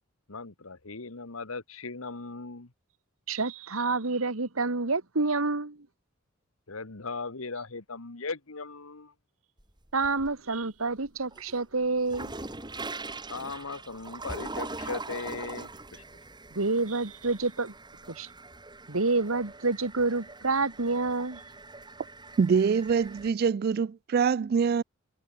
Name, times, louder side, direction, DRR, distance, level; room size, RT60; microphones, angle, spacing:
voice 1, 0.3-2.7 6.7-9.1 13.3-16.0, left 4 dB, 80° left, 1.6 m, -38 dB
voice 2, 3.3-5.8 9.9-12.3 16.6-17.7 18.1-18.3 18.9-21.4, right 3 dB, 80° right, 1.8 m, -28 dB
sound 1, 9.6-10.5 11.0-23.3, right 3 dB, 20° right, 4.7 m, -42 dB
voice 3, 22.4-24.8, right 6 dB, 45° right, 0.3 m, -24 dB
head